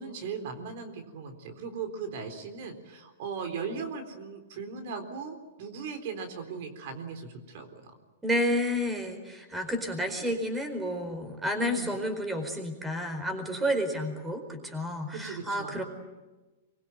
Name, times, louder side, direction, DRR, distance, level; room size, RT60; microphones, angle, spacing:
voice 1, 0.0-7.9 11.6-11.9 13.9-14.0 15.1-15.8, right 5 dB, 60° right, 6 dB, 4.0 m, -38 dB
voice 2, 8.2-15.8, equal, 10° right, 7 dB, 4.6 m, -30 dB
24.5 x 22.5 x 9.3 m, 1.2 s
hypercardioid pair, 135°, 0 cm